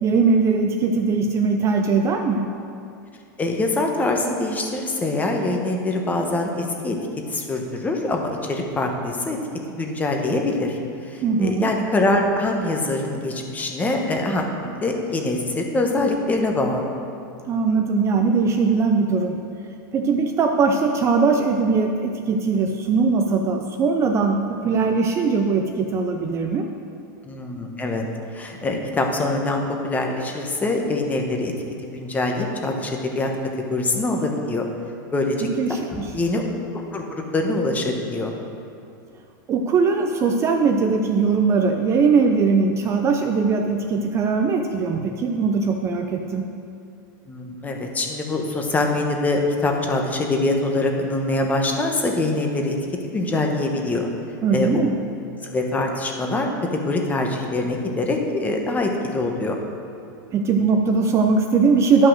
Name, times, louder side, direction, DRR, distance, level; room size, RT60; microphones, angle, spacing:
voice 1, 0.0-2.5 11.2-11.7 17.5-19.4 19.9-26.7 35.4-36.1 39.5-46.5 54.4-55.0 60.3-62.1, right 4 dB, 25° right, 4 dB, 0.5 m, -20 dB
voice 2, 3.4-7.0 7.3-9.4 9.8-10.8 11.0-16.9 27.2-28.0 28.3-31.5 31.9-33.3 33.7-34.7 35.1-35.5 36.1-36.5 36.7-38.3 47.3-52.8 53.1-54.1 54.5-54.8 55.4-56.5 56.8-59.6, left 2 dB, 15° left, 2 dB, 1.1 m, -24 dB
11.5 x 5.6 x 6.3 m, 2.5 s
supercardioid pair, 145°, 11 cm